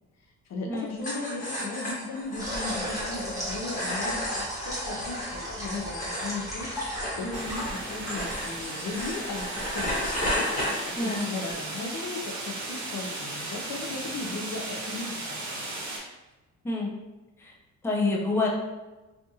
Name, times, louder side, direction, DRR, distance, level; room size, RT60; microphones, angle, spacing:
voice 1, 0.5-6.7 7.1-10.1 11.0-15.7, left 3 dB, 60° left, 0 dB, 0.6 m, -36 dB
sound 1, 1.0-11.6, left 1 dB, 25° left, 1.2 m, -34 dB
sound 2, 2.4-8.6, equal, 10° right, 1.1 m, -36 dB
sound 3, 7.3-16.0, right 2 dB, 70° right, 0.9 m, -36 dB
voice 2, 16.6-17.0 17.4-17.5 17.8-18.5, left 3 dB, 10° left, -3 dB, 0.5 m, -27 dB
2.7 x 2.5 x 2.7 m, 1.1 s
cardioid pair, 90°, 30 cm